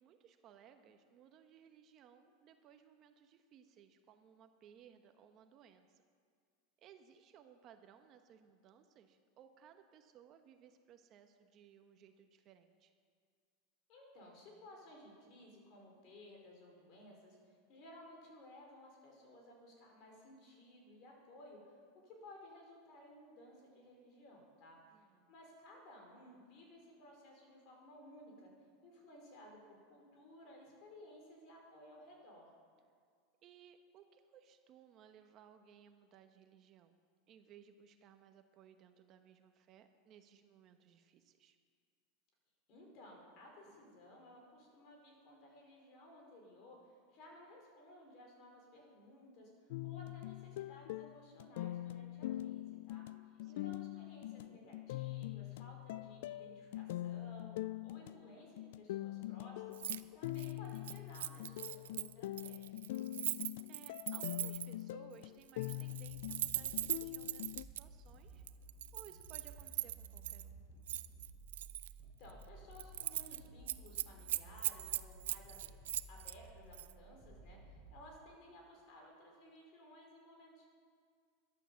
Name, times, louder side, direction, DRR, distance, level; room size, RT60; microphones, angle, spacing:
voice 1, 0.0-6.0 6.8-12.9 24.9-25.3 33.4-36.9 37.3-41.6 53.4-53.7 63.7-68.4 68.9-70.5, right 8 dB, 35° right, 7 dB, 1.0 m, -61 dB
voice 2, 13.9-17.4 17.7-21.8 22.0-24.8 25.3-28.5 28.8-32.5 42.7-46.8 47.1-49.5 49.8-53.1 53.5-57.5 57.8-62.6 72.2-75.8 76.1-80.7, left 1 dB, 45° left, 0 dB, 4.9 m, -57 dB
sound 1, 49.7-67.6, left 15 dB, 70° left, 0.3 m, -44 dB
Keys jangling, 59.7-60.0 60.3-64.8 65.5-67.8 68.5-70.4 70.9-71.9 72.3-72.4 72.7-73.4 73.7-76.4 76.7-76.9, right 13 dB, 85° right, 0.5 m, -40 dB
sound 2, 66.0-78.0, right 2 dB, ahead, 5.0 m, -56 dB
13.0 x 11.5 x 7.1 m, 2.1 s
supercardioid pair, 140°, 0 cm